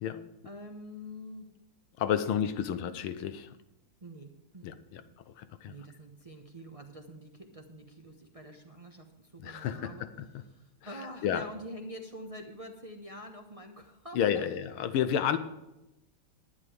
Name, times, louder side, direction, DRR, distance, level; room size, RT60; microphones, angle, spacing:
voice 1, 0.4-1.5 2.1-2.2 4.0-5.1 5.7-10.1 10.4-14.5, equal, 25° right, 3 dB, 0.7 m, -46 dB
voice 2, 2.0-3.6 4.6-5.8 9.4-10.3 10.9-11.4 14.1-15.4, left 9 dB, 85° left, 12 dB, 1.7 m, -31 dB
11.0 x 11.0 x 5.0 m, 0.93 s
omnidirectional pair, 2.3 m